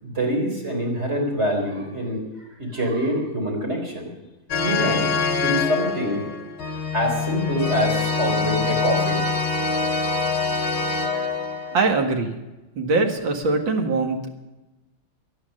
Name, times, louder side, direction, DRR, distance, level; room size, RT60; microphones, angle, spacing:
voice 1, 0.0-2.2 2.6-4.1 4.6-5.1 5.4-6.2 6.9-9.2, right 1 dB, 35° right, 1 dB, 4.2 m, -25 dB
sound 1, 4.5-11.8, left 4 dB, 60° left, 2.5 m, -24 dB
voice 2, 11.7-12.4 12.8-14.3, right 3 dB, 70° right, 3 dB, 2.5 m, -22 dB
18.5 x 11.5 x 6.6 m, 1.1 s
omnidirectional pair, 2.2 m